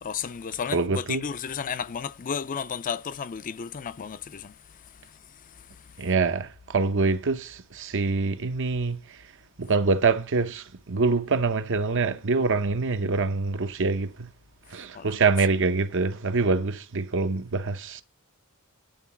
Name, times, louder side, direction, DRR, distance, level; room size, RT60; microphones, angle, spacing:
voice 1, 0.0-4.5 4.8-5.2 5.4-5.9 14.9-15.2, left 7 dB, 40° left, 0.4 m, -33 dB
voice 2, 0.7-1.2 6.0-9.2 9.6-14.3 14.7-18.0, right 4 dB, 60° right, 0.8 m, -25 dB
10.5 x 4.0 x 7.2 m
head